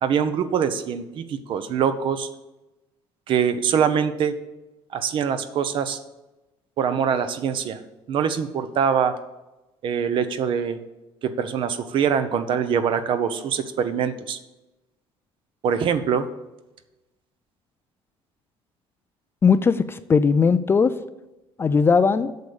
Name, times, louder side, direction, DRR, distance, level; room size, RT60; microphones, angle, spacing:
voice 1, 0.0-2.3 3.3-4.3 4.9-6.0 6.8-7.8 8.1-9.2 9.8-10.8 11.2-14.4 15.6-16.3, right 7 dB, 50° right, 11 dB, 0.9 m, -23 dB
voice 2, 19.4-20.9 21.6-22.3, left 5 dB, 20° left, 12 dB, 0.4 m, -18 dB
8.1 x 6.6 x 7.0 m, 1.0 s
cardioid pair, 140°, 11 cm